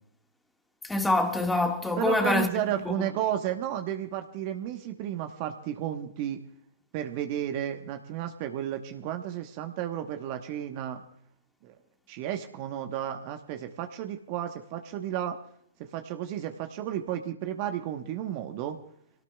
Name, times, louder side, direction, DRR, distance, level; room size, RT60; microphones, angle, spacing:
voice 1, 0.8-2.9, left 2 dB, 5° left, 1.8 m, -26 dB
voice 2, 2.0-6.4 6.9-11.0 11.6-11.7 12.1-15.4 15.9-18.8, right 11 dB, 45° right, 1.2 m, -32 dB
27.5 x 18.0 x 2.4 m
figure-of-eight pair, 115°, 0 cm